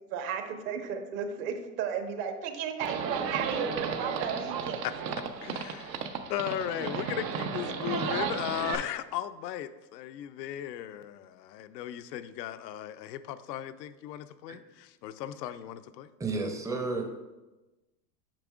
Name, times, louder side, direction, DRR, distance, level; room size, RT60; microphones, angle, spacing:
voice 1, 0.1-4.8, right 7 dB, 55° right, 1.1 m, -34 dB
Livestock farm animals working animals, 2.8-8.7, right 6 dB, 80° right, 0.9 m, -34 dB
voice 2, 5.4-16.1, left 12 dB, 80° left, 0.6 m, -37 dB
voice 3, 16.2-17.0, right 3 dB, 5° right, 0.5 m, -32 dB
8.8 x 5.9 x 2.4 m
hypercardioid pair, 115°, 49 cm